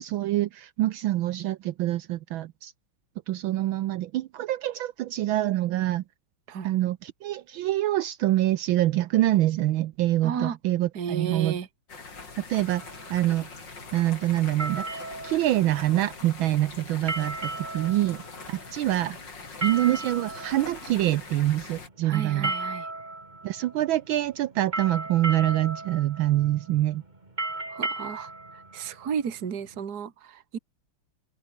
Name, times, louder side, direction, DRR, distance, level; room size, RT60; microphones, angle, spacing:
voice 1, 0.0-2.7 3.3-6.0 6.6-11.6 12.5-12.8 13.1-13.5 13.9-18.2 18.5-19.2 19.6-22.5 23.4-27.0, right 14 dB, 75° right, 1.4 m, -25 dB
voice 2, 10.2-10.6 10.9-11.7 22.0-22.9 27.7-28.3 28.7-30.6, right 7 dB, 50° right, 2.2 m, -33 dB
sound 1, 11.9-21.9, left 4 dB, 55° left, 4.3 m, -43 dB
sound 2, 12.6-29.8, right 2 dB, 20° right, 2.7 m, -36 dB
open air
omnidirectional pair, 2.4 m